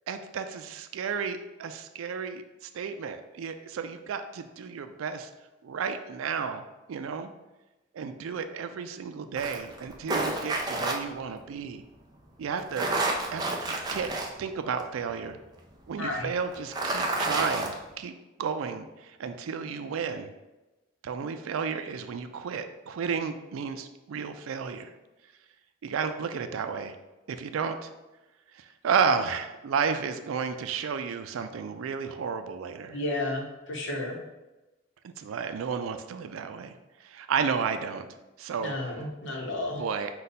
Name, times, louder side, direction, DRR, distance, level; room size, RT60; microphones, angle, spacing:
voice 1, 0.1-5.3 5.6-7.3 7.9-11.8 12.4-12.9 13.3-14.1 14.4-15.4 15.9-18.1 18.4-18.9 19.2-20.3 21.0-24.9 25.8-27.0 27.3-27.9 28.8-33.0 35.0-36.7 37.0-38.1 38.4-38.8 39.8-40.1, right 6 dB, 90° right, 8 dB, 0.4 m, -32 dB
sound 1, 9.4-10.9 12.6-14.3 14.8-14.9 16.5-17.7, right 2 dB, 20° right, 0.4 m, -29 dB
voice 2, 16.0-16.3 32.9-34.2 38.6-39.8, left 2 dB, 65° left, 0 dB, 0.9 m, -32 dB
5.1 x 2.3 x 4.1 m, 1.1 s
head